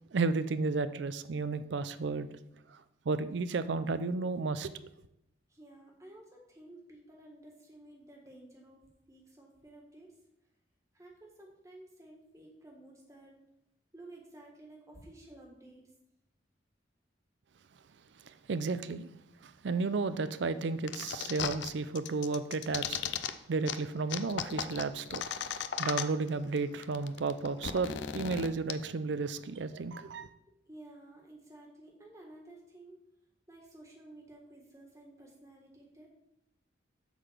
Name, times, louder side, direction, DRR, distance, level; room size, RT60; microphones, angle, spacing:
voice 1, 0.1-2.3 3.1-4.7 18.3-19.1 19.4-23.0 23.5-25.5 25.8-30.3, right 4 dB, 70° right, 0.5 m, -33 dB
voice 2, 5.5-10.1 10.9-13.4 13.9-15.8 30.5-33.0 33.5-36.1, right 1 dB, 15° right, 1.5 m, -53 dB
sound 1, 20.9-21.7 22.0-23.3 23.7-23.8 24.1-26.3 26.6-26.7 26.8-28.7, left 8 dB, 70° left, 0.5 m, -35 dB
8.0 x 3.9 x 6.7 m
head